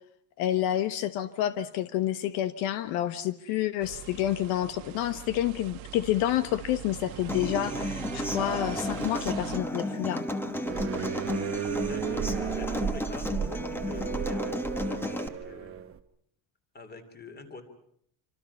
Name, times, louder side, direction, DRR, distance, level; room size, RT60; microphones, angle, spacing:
voice 1, 0.4-10.2, left 12 dB, 75° left, 12 dB, 1.3 m, -29 dB
sound 1, 3.8-9.6, right 16 dB, 70° right, 1.3 m, -42 dB
Human voice / Acoustic guitar, 7.3-15.3, left 1 dB, 5° left, 1.1 m, -33 dB
sound 2, 10.6-16.0, right 9 dB, 25° right, 0.9 m, -34 dB
voice 2, 11.8-15.9 16.7-17.6, left 3 dB, 20° left, 8 dB, 2.9 m, -46 dB
26.5 x 26.0 x 5.6 m, 0.68 s
cardioid pair, 160°, 49 cm